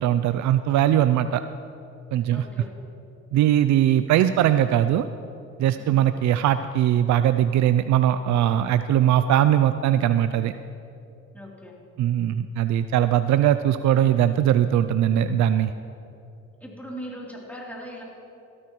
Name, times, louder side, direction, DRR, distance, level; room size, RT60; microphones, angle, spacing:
voice 1, 0.0-1.4 2.1-2.5 3.3-5.0 5.6-10.5 12.0-15.7, right 11 dB, 70° right, 11 dB, 0.4 m, -20 dB
voice 2, 2.3-2.7 5.8-6.0 11.3-11.8 16.6-18.0, equal, 5° left, -4 dB, 3.3 m, -39 dB
17.5 x 13.0 x 3.1 m, 2.7 s
cardioid pair, 90°, 30 cm